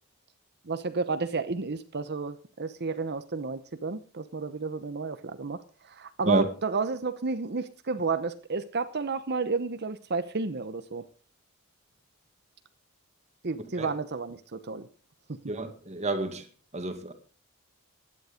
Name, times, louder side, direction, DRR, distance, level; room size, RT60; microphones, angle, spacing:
voice 1, 0.7-5.6 5.9-11.0 13.4-14.9, right 4 dB, 50° right, 0.9 m, -31 dB
voice 2, 15.5-16.4 16.7-17.1, right 2 dB, 30° right, 1.9 m, -29 dB
16.5 x 11.0 x 5.1 m
head